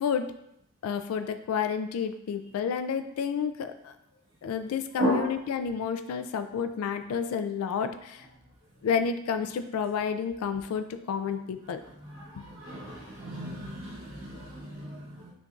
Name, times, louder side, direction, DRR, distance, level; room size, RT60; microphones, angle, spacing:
voice 1, 0.0-0.3 0.8-3.9 4.4-8.3 8.8-11.8 12.4-12.5, left 6 dB, 85° left, 9 dB, 0.3 m, -30 dB
voice 2, 12.2-15.3, equal, 60° right, -5 dB, 1.0 m, -33 dB
6.4 x 2.6 x 2.4 m, 0.77 s
head